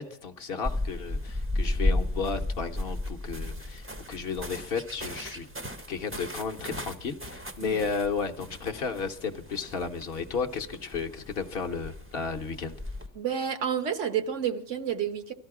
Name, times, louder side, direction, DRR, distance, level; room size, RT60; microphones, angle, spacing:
voice 1, 0.0-5.5 5.9-12.8, left 5 dB, 55° left, 1.0 m, -33 dB
sound 1, 0.6-13.1, left 1 dB, 15° right, 0.5 m, -34 dB
voice 2, 13.1-15.3, right 8 dB, 75° right, 1.3 m, -30 dB
18.0 x 13.0 x 4.8 m
omnidirectional pair, 1.3 m